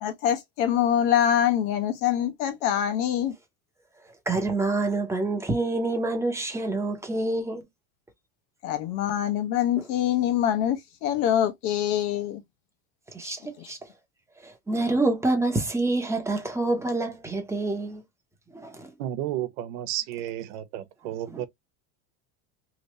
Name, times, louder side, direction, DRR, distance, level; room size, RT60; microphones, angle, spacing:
voice 1, 0.0-3.3 8.6-12.4 13.6-13.7, left 10 dB, 70° left, 1.1 m, -24 dB
voice 2, 4.3-7.7 13.1-13.8 14.4-18.0 18.5-18.9 21.3-21.4, right 2 dB, 5° right, 0.7 m, -27 dB
voice 3, 19.0-21.5, right 12 dB, 85° right, 0.9 m, -32 dB
3.1 x 2.6 x 3.0 m
cardioid pair, 145°, 45 cm